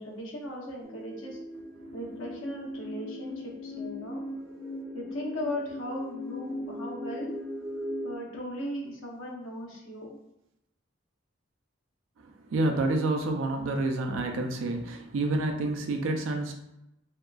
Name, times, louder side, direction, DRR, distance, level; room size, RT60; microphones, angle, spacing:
voice 1, 0.0-1.4 1.9-4.2 4.9-7.3 8.0-10.1, equal, 85° left, -2 dB, 0.7 m, -37 dB
sound 1, 0.8-8.2, left 1 dB, 10° right, 0.4 m, -38 dB
voice 2, 12.5-16.5, right 2 dB, 80° right, 3 dB, 0.4 m, -28 dB
2.7 x 2.2 x 2.3 m, 0.86 s
head